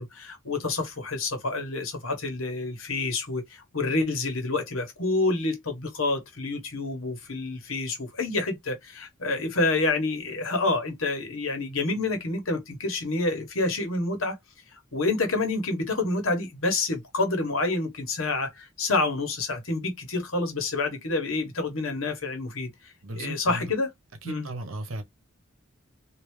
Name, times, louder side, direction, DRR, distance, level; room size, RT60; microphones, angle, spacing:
voice 1, 0.0-14.4 14.9-22.7 23.1-23.9 24.2-24.5, left 3 dB, 85° left, 1.3 m, -28 dB
voice 2, 23.0-23.7 24.2-25.0, right 1 dB, 80° right, 0.9 m, -35 dB
3.2 x 2.8 x 3.2 m
head